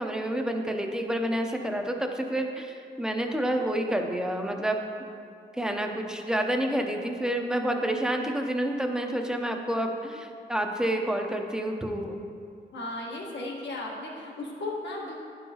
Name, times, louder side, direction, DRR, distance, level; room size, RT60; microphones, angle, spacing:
voice 1, 0.0-4.8 5.6-12.2, right 1 dB, 5° right, 3 dB, 0.6 m, -29 dB
voice 2, 12.7-15.2, left 2 dB, 75° left, -2 dB, 1.3 m, -35 dB
11.0 x 5.5 x 2.8 m, 2.4 s
cardioid pair, 105°, 19 cm